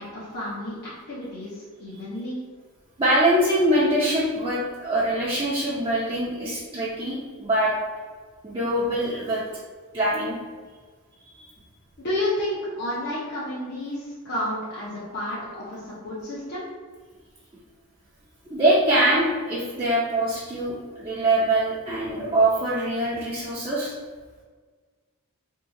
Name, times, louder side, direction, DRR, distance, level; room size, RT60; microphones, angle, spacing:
voice 1, 0.0-2.4 12.0-16.6, left 1 dB, 50° left, -9 dB, 0.8 m, -31 dB
voice 2, 3.0-7.7 8.4-9.4 9.9-10.4 11.3-11.4 18.5-23.9, right 1 dB, 25° right, -9 dB, 0.6 m, -23 dB
2.8 x 2.4 x 3.7 m, 1.5 s
head